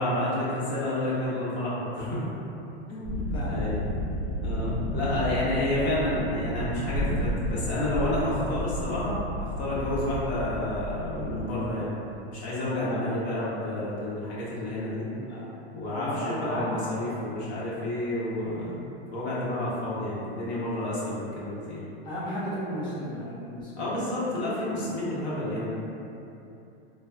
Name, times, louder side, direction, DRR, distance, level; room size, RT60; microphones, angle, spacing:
voice 1, 0.0-2.3 2.9-3.8 4.4-12.0 12.3-15.0 15.7-18.8 19.1-21.8 23.8-25.6, left 1 dB, 90° left, -8 dB, 1.0 m, -30 dB
sound 1, 3.0-11.5, equal, ahead, 0.8 m, -32 dB
voice 2, 15.1-15.4 15.9-16.7 22.0-24.0, equal, 15° left, -9 dB, 0.5 m, -35 dB
3.1 x 2.1 x 2.4 m, 2.8 s
supercardioid pair, 135°, 32 cm